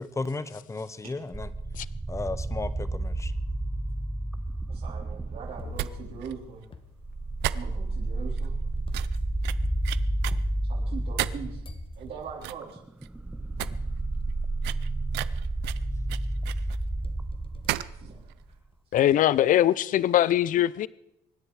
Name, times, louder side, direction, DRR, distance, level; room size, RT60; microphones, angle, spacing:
voice 1, 0.0-1.5 2.1-3.3, left 3 dB, 15° left, 1.0 m, -34 dB
sound 1, 1.1-2.0 2.6-2.7 3.6-3.7 5.6-11.3 11.6-12.6 13.8-13.9 14.4-14.8 15.2-16.0 16.4-18.8, left 6 dB, 30° left, 1.5 m, -47 dB
sound 2, 1.3-6.5 7.0-18.5, right 2 dB, 10° right, 0.6 m, -31 dB
voice 2, 4.7-6.6 7.5-8.5 10.7-11.6 12.0-12.8 17.9-18.4, right 6 dB, 65° right, 3.8 m, -41 dB
sound 3, 5.7-5.9 6.2-6.3 6.6-6.7 7.4-8.0 8.4-8.5 8.9-10.4 11.2-11.6 12.0-12.1 12.4-12.7 13.0-13.1 13.4-13.7 14.0-14.1 14.6-16.8 17.7-18.0 18.2-18.3, right 17 dB, 90° right, 0.6 m, -33 dB
voice 3, 18.9-20.9, left 12 dB, 55° left, 0.5 m, -22 dB
25.0 x 10.0 x 4.8 m
cardioid pair, 110°, 17 cm